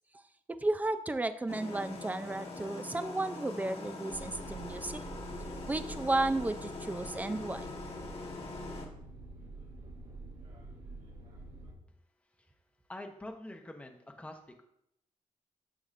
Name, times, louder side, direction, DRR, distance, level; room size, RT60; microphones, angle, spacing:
voice 1, 0.6-5.0 5.7-7.7, right 2 dB, 10° right, 10 dB, 0.5 m, -33 dB
sound 1, 1.5-8.9, left 3 dB, 50° left, 1.7 m, -43 dB
sound 2, 4.1-11.7, right 2 dB, 80° right, 2.5 m, -47 dB
voice 2, 12.9-14.7, left 1 dB, 10° left, 3 dB, 0.8 m, -46 dB
9.6 x 6.9 x 2.6 m, 0.77 s
wide cardioid pair, 125°, 13 cm